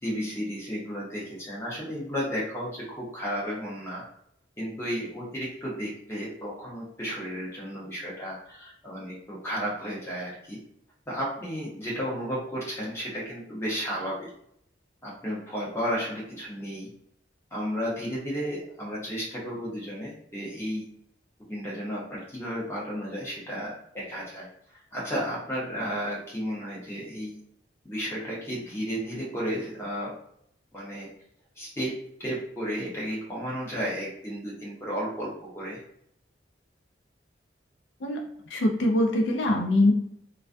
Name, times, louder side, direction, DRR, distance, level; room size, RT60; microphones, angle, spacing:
voice 1, 0.0-4.0 4.6-10.6 11.1-14.3 15.0-16.9 17.5-20.9 21.5-27.4 27.8-30.2 30.7-31.1 31.6-31.9 32.2-35.8, equal, 15° left, -5 dB, 0.7 m, -33 dB
voice 2, 38.5-39.9, left 1 dB, 75° left, 1 dB, 0.4 m, -23 dB
2.3 x 2.2 x 2.5 m, 0.71 s
head